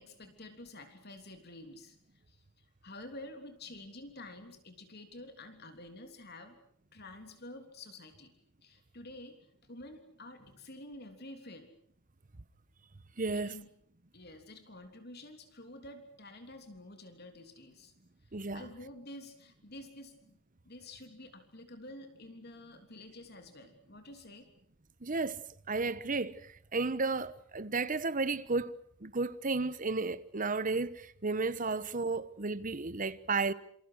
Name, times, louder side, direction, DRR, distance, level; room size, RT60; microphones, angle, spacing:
voice 1, 0.0-6.6 6.9-8.3 8.6-11.7 13.3-13.7 14.1-17.9 18.2-20.4 20.6-24.5, left 1 dB, 55° left, 3.3 m, -49 dB
voice 2, 13.2-13.5 18.3-18.6 25.0-33.5, right 3 dB, 45° right, 1.1 m, -33 dB
28.0 x 26.5 x 6.5 m
head